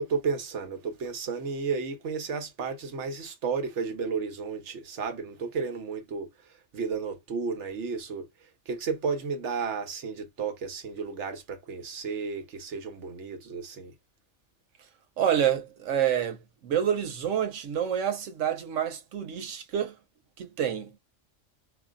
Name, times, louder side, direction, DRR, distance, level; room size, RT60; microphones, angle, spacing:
voice 1, 0.0-6.3 6.7-13.9, right 5 dB, 70° right, 1.1 m, -33 dB
voice 2, 15.2-20.0 20.4-21.0, right 9 dB, 90° right, 1.1 m, -28 dB
4.6 x 2.6 x 2.5 m
omnidirectional pair, 1.3 m